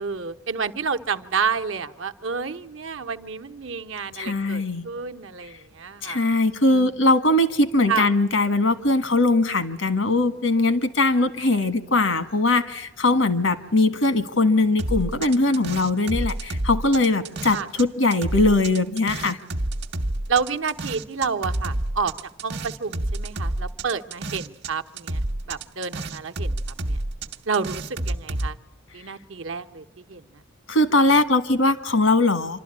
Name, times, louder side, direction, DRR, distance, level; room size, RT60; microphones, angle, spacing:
voice 1, 0.0-6.2 6.7-6.9 7.9-8.1 17.5-17.7 20.3-22.1 22.4-25.2 25.5-26.6 26.9-27.0 27.5-28.6 28.9-30.2, right 5 dB, 80° right, 8 dB, 0.9 m, -29 dB
voice 2, 4.1-4.8 6.0-19.4 30.7-32.6, left 2 dB, 85° left, 11 dB, 1.6 m, -21 dB
sound 1, 14.8-17.8 18.1-24.7 25.0-28.5, right 1 dB, 55° right, 1.0 m, -29 dB
27.0 x 12.5 x 9.7 m, 1.0 s
head